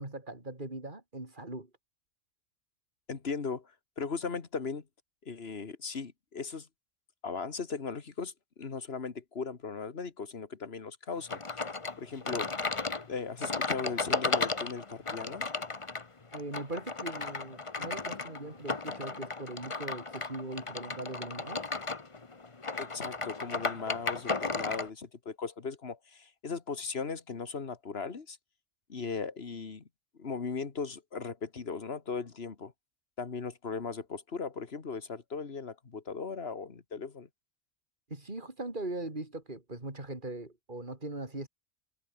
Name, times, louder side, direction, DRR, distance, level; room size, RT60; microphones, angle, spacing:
voice 1, 0.0-1.7 16.3-21.6 38.1-41.5, right 2 dB, 40° right, 4.4 m, -40 dB
voice 2, 3.1-4.8 5.2-6.7 7.2-11.4 12.0-12.5 13.1-15.4 22.8-28.4 28.9-29.8 30.1-32.7 33.2-37.3, left 5 dB, 55° left, 2.0 m, -38 dB
sound 1, 11.3-24.9, left 3 dB, 25° left, 1.2 m, -35 dB
omnidirectional pair, 1.3 m